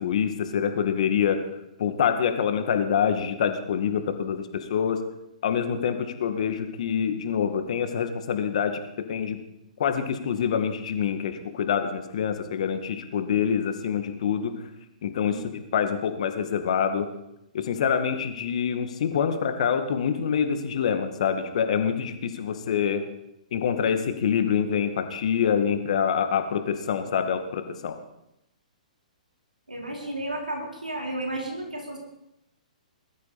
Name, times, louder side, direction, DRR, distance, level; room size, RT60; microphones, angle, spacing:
voice 1, 0.0-1.4 1.8-5.0 5.4-8.8 9.1-9.4 9.8-14.5 15.0-17.1 17.5-23.0 23.5-28.0, left 7 dB, 55° left, 7 dB, 2.0 m, -26 dB
voice 2, 29.7-32.0, right 1 dB, 90° right, 0 dB, 3.9 m, -32 dB
21.5 x 13.0 x 4.2 m, 0.84 s
figure-of-eight pair, 120°, 4 cm